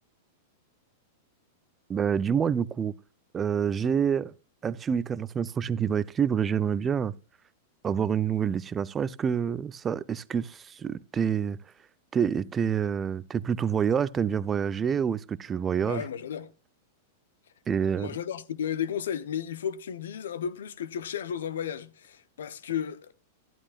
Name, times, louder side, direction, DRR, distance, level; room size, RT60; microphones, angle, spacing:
voice 1, 1.9-2.9 3.3-4.3 4.6-7.1 7.8-11.6 12.1-16.0 17.7-18.1, right 7 dB, 25° right, 0.5 m, -27 dB
voice 2, 15.8-16.5 18.0-23.1, left 8 dB, 70° left, 0.8 m, -33 dB
12.5 x 11.5 x 2.4 m
hypercardioid pair, 100°, 0 cm